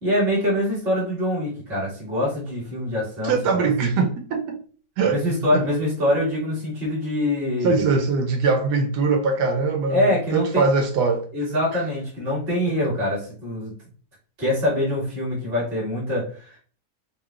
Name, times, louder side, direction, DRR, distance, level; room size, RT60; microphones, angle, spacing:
voice 1, 0.0-3.7 5.0-7.8 9.9-10.6 11.3-13.8 14.4-16.6, left 1 dB, 35° right, 2.0 m, -24 dB
voice 2, 3.2-4.6 5.0-5.2 5.5-5.6 7.6-11.3, right 4 dB, 85° right, 1.2 m, -22 dB
5.5 x 2.2 x 2.3 m
omnidirectional pair, 1.7 m